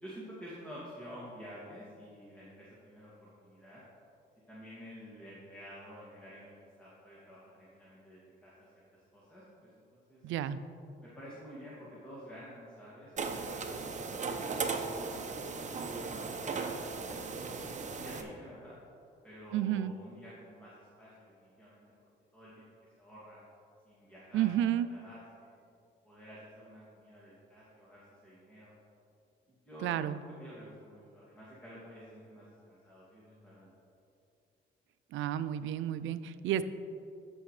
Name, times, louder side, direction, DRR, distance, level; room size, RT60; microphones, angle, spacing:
voice 1, 0.0-3.8 4.5-10.3 11.0-14.8 16.1-18.8 19.2-21.8 22.3-22.7 23.0-23.4 23.9-24.5 24.9-25.5 26.0-28.8 29.7-30.0 30.4-33.7, equal, 5° left, -9 dB, 2.2 m, -50 dB
voice 2, 10.2-10.6 19.5-19.9 24.3-24.9 29.8-30.2 35.1-36.6, right 11 dB, 80° right, 14 dB, 0.4 m, -31 dB
sound 1, 13.2-18.2, right 4 dB, 35° right, 0.8 m, -37 dB
13.5 x 6.2 x 3.2 m, 2.5 s
cardioid pair, 90°, 20 cm